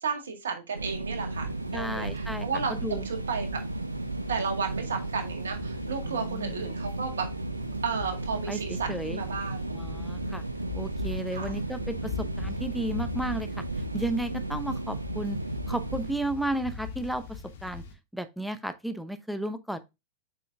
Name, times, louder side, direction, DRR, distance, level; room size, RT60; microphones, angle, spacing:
voice 1, 0.0-1.5 1.7-3.5 4.3-7.3 7.8-9.6 11.3-11.6, right 5 dB, 65° right, 2.0 m, -33 dB
sound 1, 0.7-16.1, right 3 dB, 80° right, 0.4 m, -34 dB
sound 2, 1.3-17.9, left 7 dB, 60° left, 1.7 m, -42 dB
voice 2, 1.7-3.1 6.0-6.7 8.5-9.2 9.7-10.4 10.7-13.6 13.9-15.4 15.7-17.8 18.1-19.8, right 1 dB, ahead, 0.8 m, -33 dB
7.6 x 5.5 x 2.6 m
figure-of-eight pair, 90°, 0 cm